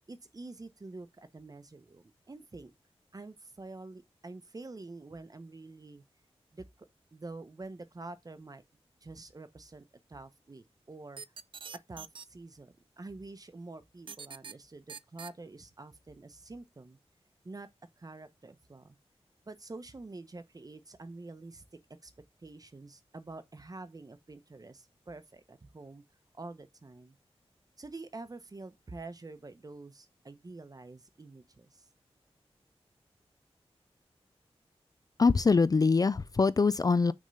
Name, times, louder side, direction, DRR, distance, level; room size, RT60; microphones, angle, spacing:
voice 1, 0.1-2.7 3.1-6.0 6.5-8.6 9.0-11.2 11.9-17.0 17.4-17.7 18.0-19.0 19.5-21.6 22.0-22.1 22.4-26.0 26.3-27.2 27.8-31.9, right 3 dB, 35° right, 0.8 m, -47 dB
sound 1, 11.2-12.3 14.1-14.5 14.9-15.3, right 6 dB, 50° right, 0.4 m, -43 dB
voice 2, 35.2-37.1, left 4 dB, 35° left, 0.4 m, -24 dB
6.3 x 3.6 x 5.5 m
wide cardioid pair, 85°, 11 cm